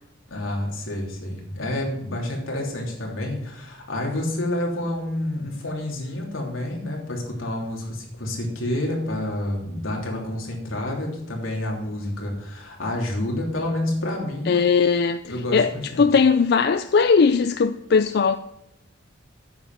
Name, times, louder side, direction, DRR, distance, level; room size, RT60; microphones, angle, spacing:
voice 1, 0.3-14.5 15.3-16.0, left 1 dB, 80° left, 3.1 m, -29 dB
voice 2, 14.5-15.2 15.5-15.7 16.0-18.4, left 5 dB, 50° left, 0.4 m, -18 dB
9.5 x 7.1 x 6.0 m
head